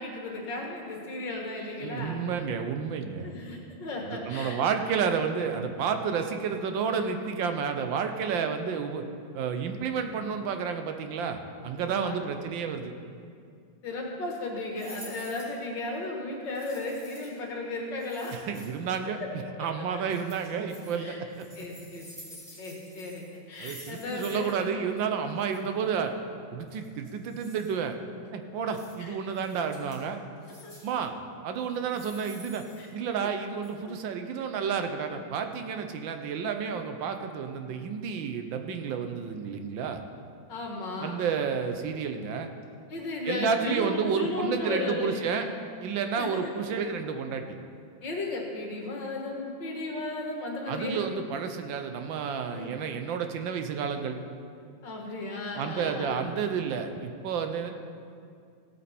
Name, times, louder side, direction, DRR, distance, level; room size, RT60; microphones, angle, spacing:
voice 1, 0.0-2.2 3.2-4.6 11.9-12.4 13.8-18.3 19.2-19.3 19.9-20.0 21.0-21.2 21.6-22.1 22.6-24.7 29.0-29.2 30.6-30.7 32.8-32.9 33.2-33.3 33.9-34.0 40.5-41.2 42.9-45.6 46.2-46.5 48.0-51.0 52.5-52.8 54.8-56.2, left 2 dB, 65° left, 0 dB, 2.2 m, -35 dB
voice 2, 1.8-3.3 4.1-9.0 9.3-12.9 18.3-19.2 19.6-21.3 23.6-26.2 26.5-28.0 28.3-30.2 30.8-31.1 31.4-32.6 32.9-40.0 41.0-42.5 43.2-45.5 45.8-47.6 50.7-54.2 55.5-57.7, right 6 dB, 75° right, 7 dB, 1.5 m, -31 dB
sound 1, 14.8-15.6 16.5-17.4 18.0-19.0 20.1-21.0 21.3-24.6 24.9-25.0 25.3-25.6 26.7-27.7 28.7-28.9 29.3-30.0 30.4-31.0 31.7-33.3 33.6-33.7, equal, 20° right, 2.9 m, -49 dB
16.0 x 8.6 x 4.3 m, 2.3 s
omnidirectional pair, 2.2 m